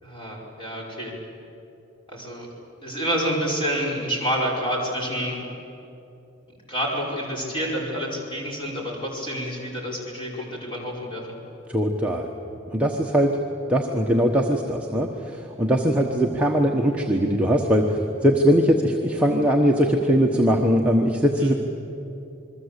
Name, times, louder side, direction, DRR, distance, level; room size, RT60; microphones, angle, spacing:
voice 1, 0.0-1.1 2.1-2.5 2.8-5.4 6.7-11.3 21.4-21.6, equal, 20° left, -2 dB, 5.0 m, -28 dB
voice 2, 11.7-12.3 12.7-13.4 13.7-21.5, equal, 5° right, -1 dB, 1.1 m, -21 dB
27.5 x 22.0 x 8.2 m, 2.9 s
head